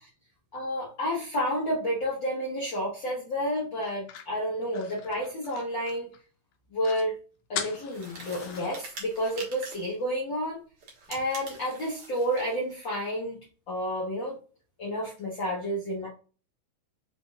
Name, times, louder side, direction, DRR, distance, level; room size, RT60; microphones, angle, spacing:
voice 1, 0.5-6.1 6.7-7.1 7.5-10.6 11.1-13.4 13.7-14.4 14.8-16.1, equal, 55° left, -5 dB, 1.4 m, -30 dB
sound 1, 3.8-6.2 6.5-6.6 6.8-7.1 7.5-8.9, left 8 dB, 80° left, 2.0 m, -40 dB
sound 2, 7.9-9.9 10.8-12.6, right 3 dB, 55° right, 2.1 m, -45 dB
5.2 x 3.6 x 2.4 m, 0.36 s
omnidirectional pair, 3.5 m